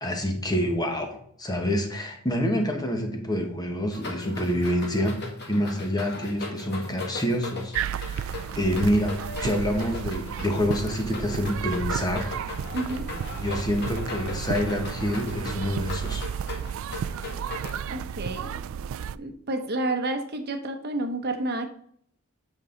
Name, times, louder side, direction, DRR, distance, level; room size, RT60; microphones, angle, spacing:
voice 1, 0.0-5.2 5.5-12.3 13.4-16.3, equal, 20° left, 3 dB, 1.2 m, -27 dB
sound 1, 3.9-17.8, left 3 dB, 50° left, 1.9 m, -39 dB
sound 2, 7.7-19.2, right 8 dB, 70° right, 0.3 m, -33 dB
voice 2, 12.7-13.1 17.9-18.6 19.1-21.7, right 2 dB, 50° right, 6 dB, 0.8 m, -30 dB
8.2 x 5.4 x 3.9 m, 0.66 s
head